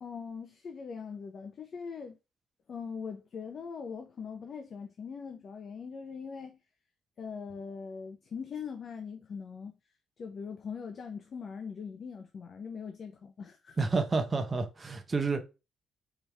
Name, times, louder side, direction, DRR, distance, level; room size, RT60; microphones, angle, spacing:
voice 1, 0.0-2.2 2.7-6.6 7.2-9.7 10.2-13.8, left 6 dB, 45° left, 0.6 m, -41 dB
voice 2, 13.8-15.4, right 4 dB, 25° right, 0.8 m, -29 dB
4.5 x 3.5 x 3.3 m
cardioid pair, 135°, 0 cm